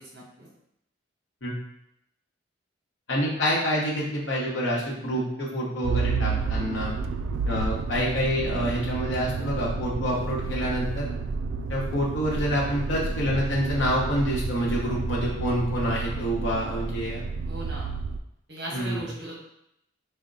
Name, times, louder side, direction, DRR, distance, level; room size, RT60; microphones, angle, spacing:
voice 1, 0.1-0.5 17.4-17.9 18.5-19.3, right 1 dB, 60° right, -4 dB, 1.1 m, -37 dB
voice 2, 3.1-6.9 7.4-11.1 11.7-17.2 18.7-19.1, equal, 75° left, -4 dB, 1.0 m, -27 dB
Motor vehicle (road), 5.8-18.2, right 4 dB, 90° right, 0.3 m, -30 dB
4.2 x 2.2 x 3.8 m, 0.79 s
head